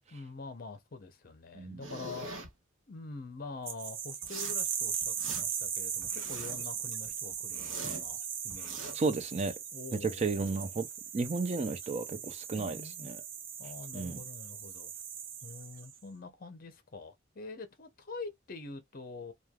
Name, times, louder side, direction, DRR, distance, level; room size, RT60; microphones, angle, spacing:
voice 1, 0.1-2.3 2.9-9.0 9.7-10.6 12.5-13.1 13.6-14.9 15.4-19.3, left 3 dB, 45° left, 0.7 m, -45 dB
sound 1, 1.8-2.5 4.2-4.6 5.0-5.7 6.0-6.7 7.1-8.1 8.5-8.9, right 2 dB, 85° right, 1.1 m, -43 dB
sound 2, 3.7-16.0, right 8 dB, 65° right, 0.7 m, -38 dB
voice 2, 8.9-9.5 10.0-10.9 11.1-13.2 13.9-14.2, right 4 dB, 35° right, 0.5 m, -33 dB
3.1 x 2.3 x 2.3 m
head